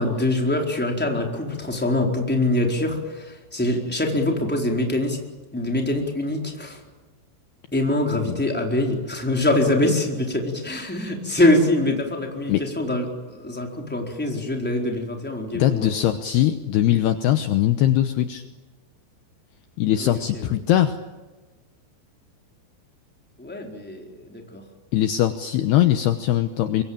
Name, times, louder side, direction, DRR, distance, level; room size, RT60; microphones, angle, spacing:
voice 1, 0.0-5.2 5.5-6.8 7.7-15.9 20.0-20.4 23.4-24.6, left 1 dB, ahead, 1 dB, 3.4 m, -24 dB
voice 2, 15.5-18.4 19.8-21.0 24.9-26.8, left 12 dB, 80° left, 8 dB, 2.4 m, -21 dB
26.0 x 23.5 x 8.9 m, 1.2 s
omnidirectional pair, 6.0 m